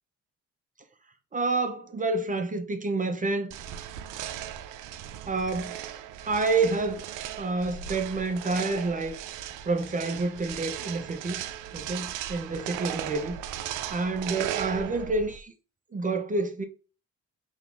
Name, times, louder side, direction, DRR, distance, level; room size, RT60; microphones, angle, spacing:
voice 1, 1.3-3.5 5.3-5.9 6.2-7.1 7.4-9.2 9.7-11.4 11.7-13.5 13.9-15.5 15.9-16.6, right 3 dB, 25° right, 0.6 m, -28 dB
sound 1, 3.5-15.4, right 11 dB, 90° right, 0.5 m, -37 dB
5.1 x 3.0 x 2.5 m
cardioid pair, 90°, 30 cm